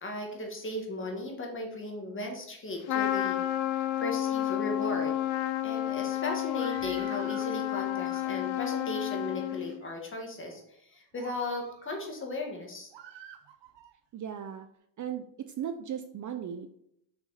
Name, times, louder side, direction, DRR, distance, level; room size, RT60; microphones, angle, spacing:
voice 1, 0.0-3.4 3.7-5.2 5.6-12.9, left 2 dB, 25° left, 2 dB, 1.8 m, -37 dB
Trumpet, 2.9-9.8, left 13 dB, 85° left, 0.9 m, -31 dB
Screaming, 6.4-7.5 7.9-8.7 9.4-9.9 10.5-10.6 11.1-12.1 12.9-13.9, right 10 dB, 70° right, 0.9 m, -50 dB
voice 2, 14.1-14.7 15.0-16.7, right 9 dB, 40° right, 7 dB, 0.5 m, -37 dB
6.4 x 6.1 x 4.2 m, 0.74 s
cardioid pair, 140°, 46 cm